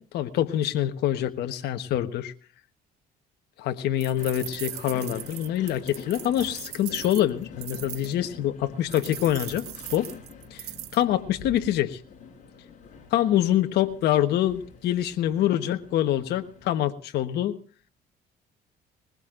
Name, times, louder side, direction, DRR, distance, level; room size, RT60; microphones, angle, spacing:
voice 1, 0.0-2.3 3.6-9.6 9.9-10.1 10.5-10.7 10.9-12.0 13.1-17.6, left 12 dB, 75° left, 7 dB, 1.2 m, -25 dB
sound 1, 4.0-8.1 8.9-11.0, right 14 dB, 75° right, 1.0 m, -39 dB
Train, 4.2-16.7, left 5 dB, 50° left, 6.8 m, -46 dB
21.0 x 20.5 x 2.5 m, 0.41 s
cardioid pair, 110°, 17 cm